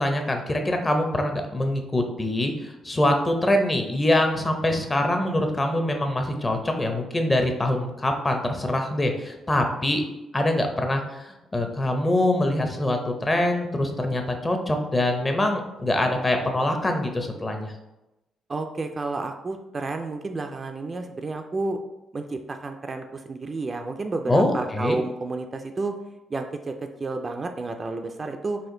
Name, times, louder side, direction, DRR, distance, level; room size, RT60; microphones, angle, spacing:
voice 1, 0.0-10.0 10.3-11.3 11.5-17.7 24.3-25.0, left 1 dB, 20° left, 4 dB, 0.6 m, -24 dB
voice 2, 18.5-21.8 22.1-25.9 26.3-28.6, right 3 dB, 35° right, 5 dB, 0.3 m, -31 dB
4.2 x 2.4 x 3.7 m, 0.95 s
cardioid pair, 90°, 0 cm